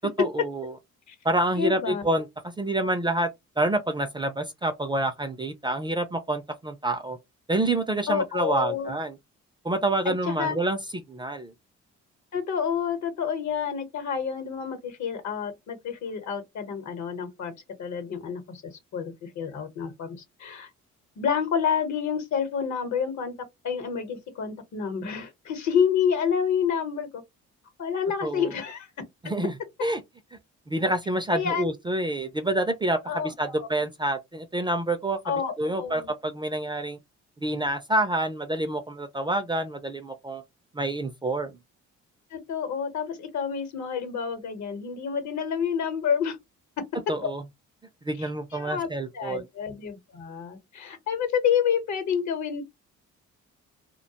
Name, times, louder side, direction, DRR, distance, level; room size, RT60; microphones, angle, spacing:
voice 1, 0.2-0.7 1.2-3.3 3.6-7.2 7.5-9.2 9.6-10.8 11.1-11.5 28.2-28.5 29.2-29.5 29.8-30.0 30.7-37.0 37.4-40.4 40.7-41.5 47.1-47.4 48.1-49.4, right 1 dB, 15° right, 0.3 m, -27 dB
voice 2, 1.6-2.0 8.1-8.9 10.3-10.6 12.3-17.5 17.8-18.6 18.9-20.7 21.2-23.3 23.6-27.2 27.8-28.9 31.3-31.7 33.1-33.7 35.2-36.1 42.3-46.4 48.2-48.9 49.1-52.6, left 7 dB, 65° left, 0.9 m, -28 dB
2.3 x 2.2 x 2.7 m
cardioid pair, 90°, 30 cm